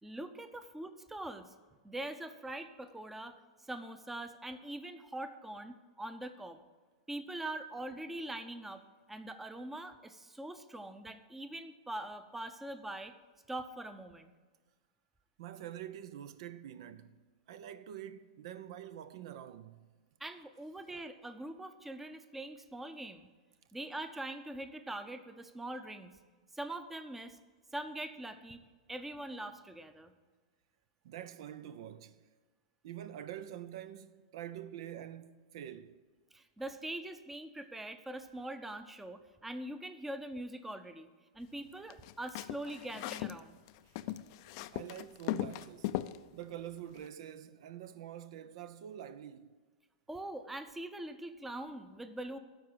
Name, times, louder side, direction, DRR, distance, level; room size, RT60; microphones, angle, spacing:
voice 1, 0.0-1.5 1.8-6.6 7.1-8.8 9.1-13.1 13.5-14.3 20.2-23.3 23.7-26.1 26.5-27.4 27.7-28.6 28.9-30.1 36.3-41.1 41.3-43.6 50.1-52.4, right 1 dB, 5° right, 0.7 m, -43 dB
voice 2, 15.4-17.2 17.5-19.8 20.9-21.1 31.0-32.2 32.8-36.0 43.8-44.0 44.4-46.0 46.3-49.6, right 11 dB, 65° right, 0.6 m, -46 dB
sound 1, 41.9-43.4 43.7-46.2, left 15 dB, 55° left, 0.5 m, -38 dB
12.5 x 4.8 x 8.5 m
hypercardioid pair, 125°, 3 cm